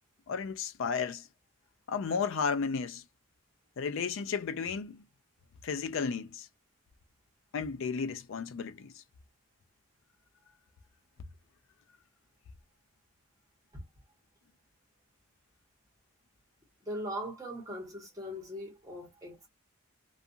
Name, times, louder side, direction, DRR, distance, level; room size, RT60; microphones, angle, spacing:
voice 1, 0.3-1.3 1.9-3.0 3.8-5.0 5.6-6.5 7.5-9.0, left 5 dB, 65° left, 0.4 m, -33 dB
voice 2, 16.8-19.5, equal, 15° right, 1.2 m, -40 dB
2.5 x 2.4 x 2.7 m
head